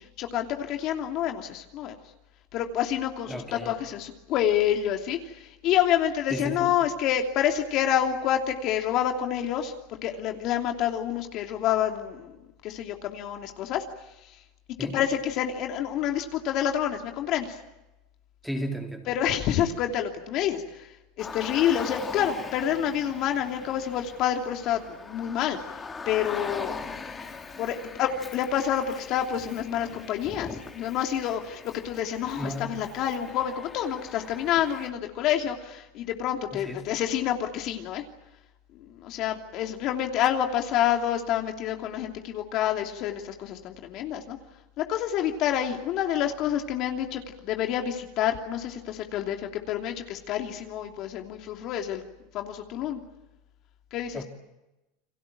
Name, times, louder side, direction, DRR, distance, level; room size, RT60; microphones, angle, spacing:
voice 1, 0.0-2.0 2.5-12.4 12.6-13.8 14.8-17.6 19.1-20.9 21.2-25.6 26.1-26.8 27.6-38.0 38.7-44.4 44.8-52.0 52.3-53.0 53.9-54.2, left 10 dB, 50° left, 2.9 m, -28 dB
voice 2, 3.3-3.7 6.3-6.8 14.8-15.0 18.4-19.1 32.4-32.9 36.5-36.9 54.1-54.2, equal, ahead, 3.6 m, -34 dB
Car, 21.2-34.9, left 4 dB, 20° left, 3.0 m, -41 dB
30.0 x 23.0 x 7.6 m
supercardioid pair, 120°, 0 cm